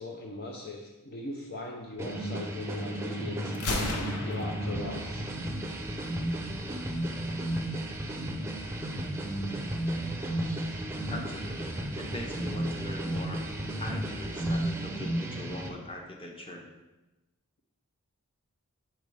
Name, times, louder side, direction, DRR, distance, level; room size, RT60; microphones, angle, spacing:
voice 1, 0.0-5.2 15.0-15.1, left 2 dB, 45° left, 1 dB, 0.6 m, -40 dB
sound 1, 2.0-15.7, right 1 dB, 10° right, 0.6 m, -33 dB
Gunshot gunfire, 3.5-5.5, left 2 dB, 85° left, 0.8 m, -35 dB
voice 2, 11.1-13.4 13.8-16.6, left 1 dB, 25° left, 0 dB, 1.0 m, -41 dB
4.8 x 4.5 x 5.4 m, 1.0 s
head